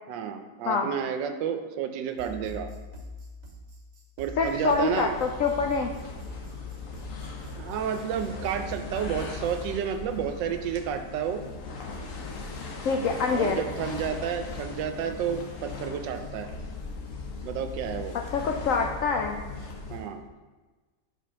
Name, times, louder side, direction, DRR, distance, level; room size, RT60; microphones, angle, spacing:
voice 1, 0.1-2.7 4.2-5.2 7.6-11.4 13.3-16.5 17.4-18.1 19.9-20.2, right 8 dB, 80° right, 7 dB, 1.3 m, -31 dB
sound 1, 2.1-9.7, left 1 dB, 55° right, 1.2 m, -44 dB
voice 2, 4.4-5.9 12.8-13.6 18.3-19.4, left 5 dB, 85° left, 3 dB, 0.7 m, -25 dB
sound 2, 4.4-20.2, left 4 dB, 55° left, 1.0 m, -39 dB
5.1 x 4.3 x 5.5 m, 1.3 s
omnidirectional pair, 1.9 m